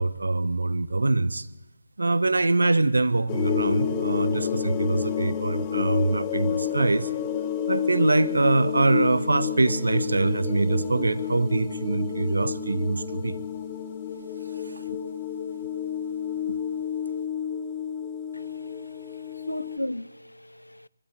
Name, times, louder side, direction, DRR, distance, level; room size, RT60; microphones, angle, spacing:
voice 1, 0.0-1.5 2.0-7.1 7.7-13.4 14.6-14.8, right 2 dB, 65° right, 1.0 m, -24 dB
sound 1, 3.3-19.8, left 8 dB, 20° left, 1.2 m, -30 dB
voice 2, 18.3-20.9, left 1 dB, 85° left, 0.6 m, -37 dB
23.5 x 12.5 x 9.2 m
figure-of-eight pair, 145°, 0 cm